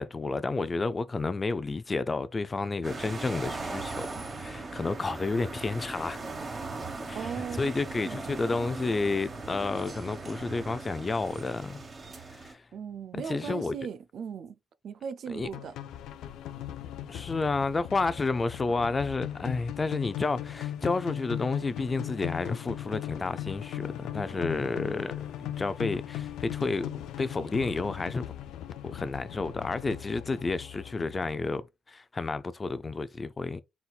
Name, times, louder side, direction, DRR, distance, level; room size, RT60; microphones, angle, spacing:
voice 1, 0.0-6.2 7.1-11.9 12.3-12.6 13.3-13.7 15.3-15.5 17.1-26.9 27.2-28.2 28.8-33.6, left 3 dB, 30° left, 0.4 m, -31 dB
sound 1, 2.8-12.5, right 3 dB, 35° right, 1.3 m, -39 dB
voice 2, 7.1-8.6 12.7-14.6 14.8-15.8, right 7 dB, 65° right, 0.4 m, -38 dB
sound 2, 15.4-31.5, left 11 dB, 85° left, 0.5 m, -38 dB
4.1 x 4.1 x 2.3 m
cardioid pair, 90°, 0 cm